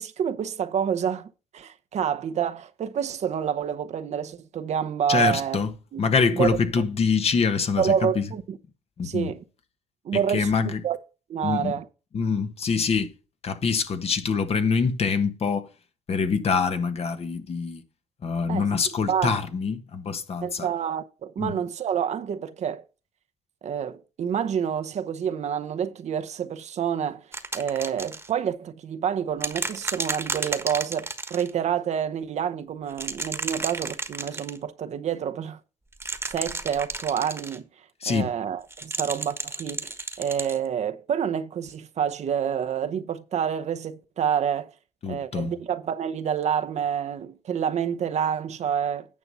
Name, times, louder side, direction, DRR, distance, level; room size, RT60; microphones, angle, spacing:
voice 1, 0.0-5.6 5.9-6.0 6.4-6.5 7.8-8.6 9.0-9.4 10.0-11.0 11.3-11.9 18.5-18.7 19.1-19.4 20.4-22.8 23.6-27.2 27.5-35.6 36.2-37.7 38.1-44.7 45.1-49.1, right 8 dB, 55° right, 0.8 m, -28 dB
voice 2, 5.1-8.4 9.0-9.3 10.1-10.8 11.4-11.8 12.1-13.1 13.4-15.7 16.1-17.8 18.2-20.7 21.4-21.6 38.0-38.3 45.0-45.6, left 5 dB, 50° left, 1.3 m, -25 dB
sound 1, 27.3-28.3 29.4-31.5 32.9-34.6 35.9-37.6 38.7-40.6 41.7-41.8, right 3 dB, 15° right, 1.3 m, -32 dB
9.6 x 5.5 x 5.5 m
cardioid pair, 80°, 14 cm